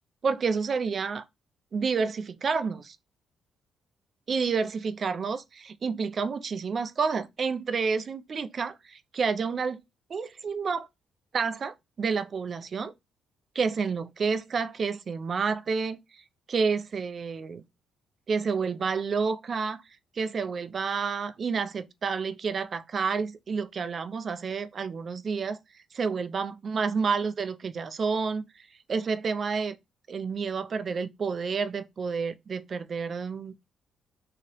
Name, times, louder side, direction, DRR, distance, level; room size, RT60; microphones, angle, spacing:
voice 1, 0.2-1.2 1.7-3.0 4.3-9.8 10.1-10.9 11.3-12.9 13.6-16.2 16.5-17.6 18.3-19.8 20.2-25.6 25.9-28.4 28.9-29.8 30.1-33.5, right 5 dB, 45° right, 0.3 m, -29 dB
3.1 x 2.8 x 2.8 m
cardioid pair, 90°, 0 cm